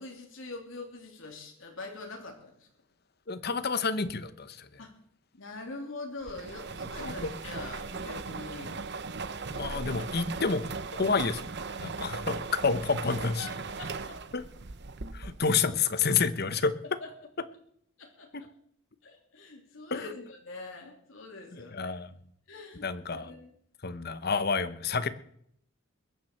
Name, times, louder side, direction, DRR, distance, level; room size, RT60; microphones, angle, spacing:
voice 1, 0.0-2.7 4.8-4.9 5.3-8.7 9.7-10.0 10.4-10.5 13.1-14.2 15.2-15.3 17.0-17.1 18.0-18.5 19.0-21.9 22.5-23.5, left 3 dB, 70° left, 2 dB, 3.0 m, -44 dB
voice 2, 3.3-4.7 7.0-7.3 9.5-10.6 10.9-11.4 11.8-13.5 14.3-14.4 15.1-16.7 18.3-18.4 19.9-20.0 21.5-22.1 22.8-23.3 23.8-25.1, left 5 dB, 50° left, 13 dB, 1.0 m, -29 dB
sound 1, 6.3-15.6, right 4 dB, 55° right, 0.9 m, -38 dB
21.5 x 7.5 x 6.7 m, 0.68 s
head